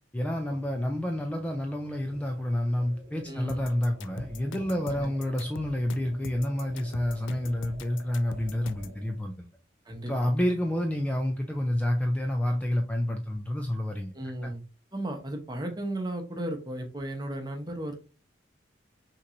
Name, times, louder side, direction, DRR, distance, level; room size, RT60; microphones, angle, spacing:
voice 1, 0.1-9.5 10.1-14.1 14.4-14.5, left 1 dB, 5° left, 0.3 m, -29 dB
sound 1, 2.0-9.3, right 1 dB, 50° right, 0.8 m, -52 dB
voice 2, 3.2-3.7 4.9-5.1 9.9-10.3 14.1-14.6 14.9-18.0, right 1 dB, 20° right, 0.8 m, -35 dB
sound 2, 3.5-9.0, left 5 dB, 80° left, 0.4 m, -43 dB
5.9 x 3.0 x 2.5 m
head